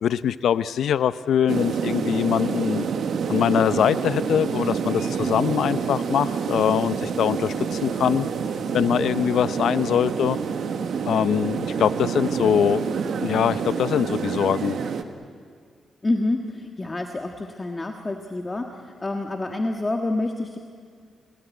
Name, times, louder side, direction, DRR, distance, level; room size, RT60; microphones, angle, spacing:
voice 1, 0.0-2.9 3.3-8.3 8.7-10.4 11.1-12.9 13.2-14.8, left 9 dB, 80° left, 14 dB, 0.7 m, -23 dB
sound 1, 1.5-15.0, right 6 dB, 70° right, 1.6 m, -27 dB
voice 2, 16.0-20.6, left 2 dB, 25° left, 3 dB, 1.6 m, -28 dB
30.0 x 18.0 x 9.4 m, 2.1 s
cardioid pair, 95°, 0 cm